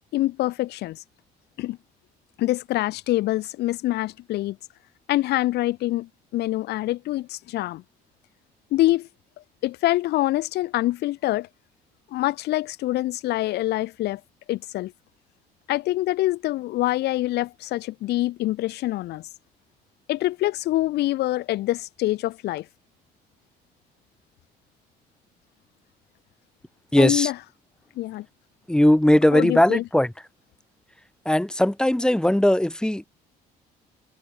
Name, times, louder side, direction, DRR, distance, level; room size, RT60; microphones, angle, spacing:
voice 1, 0.1-1.0 1.6-1.8 2.4-4.6 5.1-7.8 8.7-9.1 9.6-11.5 12.1-14.2 14.5-14.9 15.7-19.3 20.1-22.7 27.0-27.4 28.0-28.3 29.3-29.8, left 16 dB, 80° left, 2.4 m, -25 dB
voice 2, 26.9-27.3 28.7-30.1 31.2-33.1, left 1 dB, 5° left, 4.9 m, -19 dB
cardioid pair, 110°, 17 cm